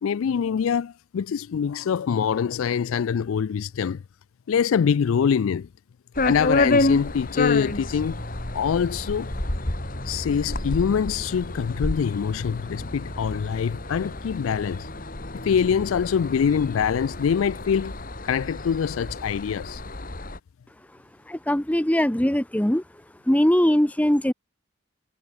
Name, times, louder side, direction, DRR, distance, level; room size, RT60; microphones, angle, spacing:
voice 1, 0.0-4.0 4.5-5.7 6.2-8.2 8.5-9.3 10.1-14.9 15.4-17.9 18.3-19.8, left 7 dB, 80° left, 0.4 m, -24 dB
sound 1, 6.2-20.4, left 2 dB, 45° left, 2.5 m, -29 dB
voice 2, 21.3-22.8 23.3-24.3, equal, 5° left, 0.8 m, -21 dB
head